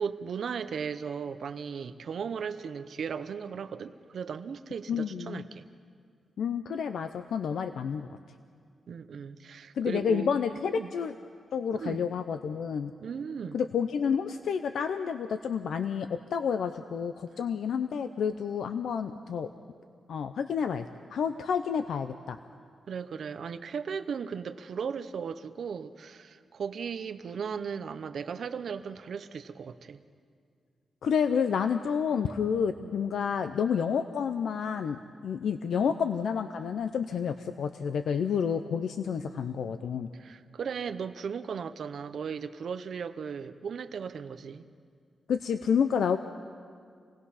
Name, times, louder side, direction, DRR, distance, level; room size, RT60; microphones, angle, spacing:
voice 1, 0.0-5.6 8.9-10.3 10.8-10.9 11.8-12.1 13.0-13.6 22.9-30.0 32.8-32.9 35.7-35.9 39.2-39.6 40.1-44.6, right 6 dB, 60° right, 11 dB, 0.7 m, -37 dB
voice 2, 4.9-5.4 6.4-8.1 9.7-11.1 11.5-12.9 13.5-19.5 20.1-22.4 31.0-40.1 45.3-46.2, left 7 dB, 80° left, 9 dB, 0.6 m, -29 dB
27.5 x 19.0 x 5.7 m, 2.2 s
wide cardioid pair, 175°, 0 cm